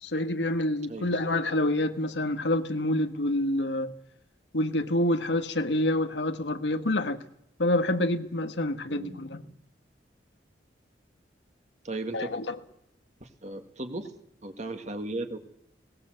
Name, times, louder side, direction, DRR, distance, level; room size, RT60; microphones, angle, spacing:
voice 1, 0.0-3.9 4.5-7.2 7.6-9.4 12.1-12.6, left 1 dB, 90° left, 1.4 m, -27 dB
voice 2, 8.9-9.6 11.8-12.3 13.2-14.1 14.4-15.4, right 2 dB, 40° right, 1.9 m, -36 dB
20.0 x 18.0 x 7.9 m
head